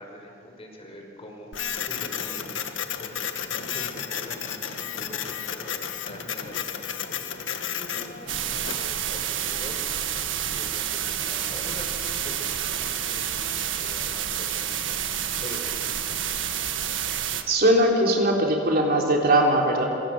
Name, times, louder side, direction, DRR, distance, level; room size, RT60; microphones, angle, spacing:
voice 1, 0.0-1.5 1.8-2.7 3.0-3.1 3.5-5.8 6.1-10.0 10.4-15.0 15.4-16.8, equal, 30° left, 2 dB, 5.3 m, -43 dB
Printer, 1.5-8.9, left 8 dB, 80° left, 1.7 m, -32 dB
sound 1, 8.3-17.4, right 9 dB, 75° right, 1.6 m, -29 dB
voice 2, 17.5-19.8, right 1 dB, 55° right, 0 dB, 3.8 m, -20 dB
26.5 x 24.5 x 7.9 m, 2.7 s
head